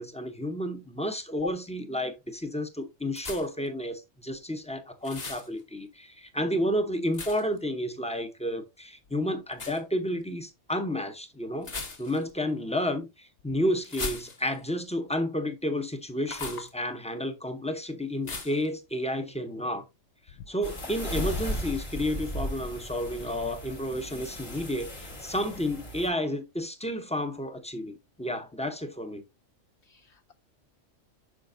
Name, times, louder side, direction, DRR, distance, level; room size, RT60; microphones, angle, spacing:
voice 1, 0.0-11.7 12.0-19.9 20.3-29.2, equal, 10° left, 0.5 m, -31 dB
sound 1, 3.1-3.7 5.0-5.5 7.1-7.6 9.5-9.8 11.6-12.3 13.8-14.7 16.2-16.7 18.2-18.7, left 3 dB, 35° left, 1.0 m, -38 dB
sound 2, 20.6-26.1, equal, 80° left, 3.1 m, -36 dB
voice 2, 29.8-30.3, left 6 dB, 65° left, 0.8 m, -39 dB
8.3 x 5.8 x 2.5 m
omnidirectional pair, 1.3 m